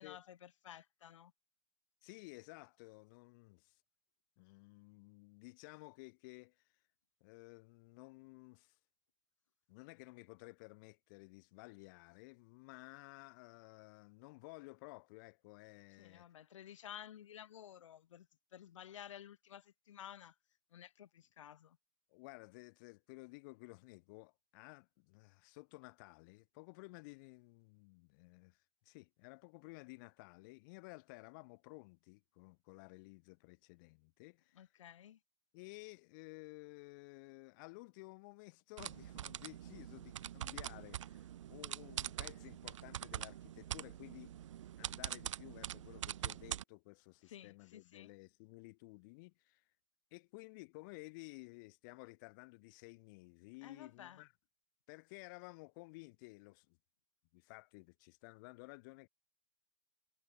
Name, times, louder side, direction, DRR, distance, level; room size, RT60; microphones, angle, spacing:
voice 1, 0.0-1.3 16.0-20.4 20.7-21.8 34.5-35.2 47.2-48.1 53.6-54.2, left 10 dB, 80° left, 0.8 m, -53 dB
voice 2, 2.0-3.7 4.4-6.6 7.2-8.7 9.7-16.3 22.1-34.7 35.5-44.3 44.8-49.6 50.1-54.3 54.9-56.8 57.3-59.1, left 26 dB, 40° left, 1.1 m, -55 dB
sound 1, 38.8-46.6, right 11 dB, 80° right, 0.6 m, -44 dB
hypercardioid pair, 145°, 16 cm